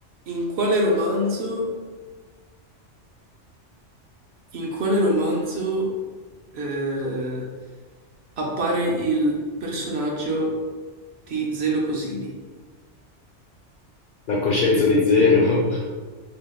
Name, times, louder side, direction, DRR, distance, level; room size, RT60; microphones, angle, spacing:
voice 1, 0.3-1.7 4.5-5.9 6.5-7.4 8.4-10.5 11.3-12.3, right 1 dB, 65° right, -2 dB, 0.9 m, -24 dB
voice 2, 14.3-15.8, left 3 dB, 60° left, -4 dB, 0.6 m, -18 dB
3.0 x 2.1 x 3.4 m, 1.4 s
omnidirectional pair, 1.2 m